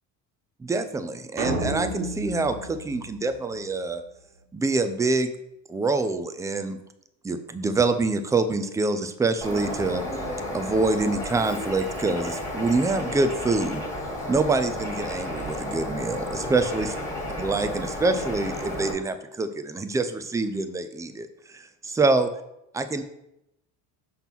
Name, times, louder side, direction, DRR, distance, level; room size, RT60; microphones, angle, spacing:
voice 1, 0.6-4.0 4.5-5.3 5.7-6.8 7.2-10.0 10.5-13.8 14.3-16.9 17.4-22.3 22.7-23.0, right 3 dB, 10° right, 9 dB, 0.3 m, -25 dB
sound 1, 1.4-3.8, right 2 dB, 85° right, 1.8 m, -32 dB
Bird, 9.4-18.9, left 1 dB, 10° left, 1.7 m, -32 dB
5.9 x 3.6 x 5.8 m, 0.84 s
cardioid pair, 125°, 38 cm